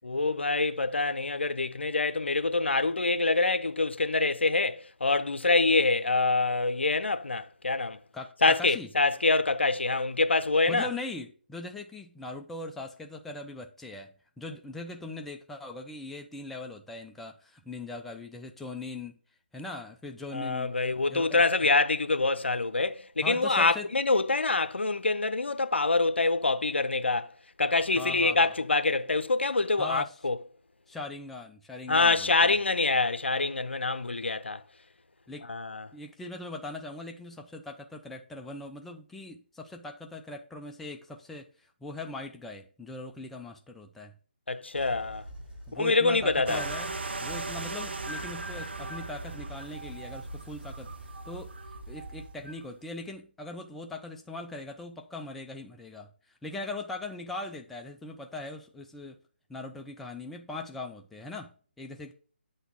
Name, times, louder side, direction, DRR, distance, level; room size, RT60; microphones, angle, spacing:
voice 1, 0.0-8.0 8.4-10.9 20.3-27.3 27.6-30.4 31.9-34.6 35.5-35.9 44.5-45.2 45.7-46.6, left 3 dB, 80° left, 0.7 m, -25 dB
voice 2, 8.1-8.9 10.7-19.2 19.5-20.7 21.1-21.4 23.2-23.9 28.0-28.5 29.8-30.2 30.9-32.6 35.3-35.5 35.9-44.1 45.7-59.2 59.5-61.5 61.8-62.1, left 2 dB, 5° left, 0.3 m, -40 dB
sound 1, 44.7-52.7 53.0-53.2, right 1 dB, 50° right, 2.3 m, -45 dB
sound 2, 46.5-52.6, right 3 dB, 70° right, 0.9 m, -39 dB
7.9 x 4.1 x 3.6 m
figure-of-eight pair, 150°, 6 cm